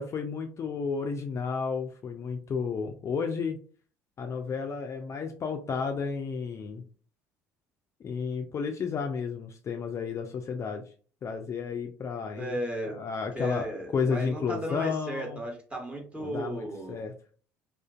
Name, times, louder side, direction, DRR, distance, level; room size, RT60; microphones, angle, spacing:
voice 1, 0.0-3.6 4.2-6.8 8.0-10.8 11.2-12.6 12.9-13.7 13.9-15.4 16.2-17.1, left 5 dB, 35° left, 5 dB, 0.3 m, -32 dB
voice 2, 12.4-13.0 13.3-17.0, right 1 dB, 15° right, 0 dB, 1.1 m, -35 dB
2.4 x 2.4 x 2.3 m, 0.41 s
hypercardioid pair, 65°, 8 cm